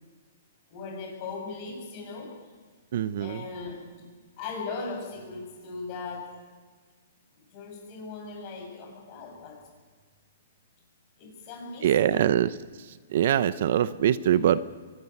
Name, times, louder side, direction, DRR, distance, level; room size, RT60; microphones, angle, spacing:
voice 1, 0.7-2.4 3.2-6.4 7.5-9.6 11.2-12.2, left 4 dB, 35° left, 1 dB, 7.3 m, -39 dB
voice 2, 2.9-3.4 11.8-12.5 13.1-14.6, right 10 dB, 55° right, 15 dB, 0.8 m, -23 dB
24.0 x 13.0 x 9.3 m, 1.5 s
hypercardioid pair, 160°, 0 cm